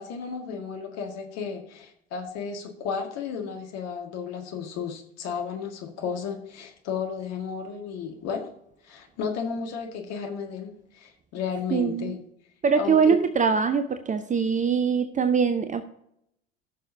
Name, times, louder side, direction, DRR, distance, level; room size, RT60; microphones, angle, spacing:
voice 1, 0.0-8.5 8.8-12.2 12.8-13.2, left 6 dB, 50° left, 3 dB, 1.9 m, -33 dB
voice 2, 11.7-12.2 12.6-15.8, right 6 dB, 25° right, 9 dB, 0.7 m, -23 dB
19.5 x 6.6 x 2.7 m, 0.76 s
figure-of-eight pair, 65°, 32 cm